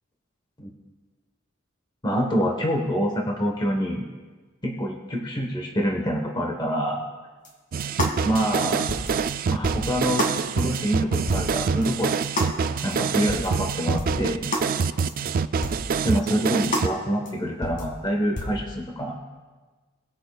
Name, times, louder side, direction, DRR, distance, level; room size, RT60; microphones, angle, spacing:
voice 1, 2.0-4.1 4.6-7.0 8.2-8.8 9.5-10.2 10.6-12.1 12.8-14.4 16.0-19.2, equal, 20° left, 1 dB, 1.0 m, -26 dB
sound 1, 7.4-7.5 8.0-8.2 8.5-8.6 8.9-9.1 9.6-9.9 10.2-10.4 10.7-10.8 11.3-11.5 11.8-11.9 12.4-12.5 12.9-13.0 13.3-13.5 14.0-14.2 14.5-14.7 15.1-15.2 15.6-15.8 16.2-16.3 16.7-16.9 17.3-17.4 17.6-17.9 18.4-18.6, left 1 dB, 40° left, 2.0 m, -28 dB
sound 2, 7.7-16.9, right 5 dB, 45° right, 0.3 m, -26 dB
19.5 x 8.9 x 2.3 m, 1.4 s
head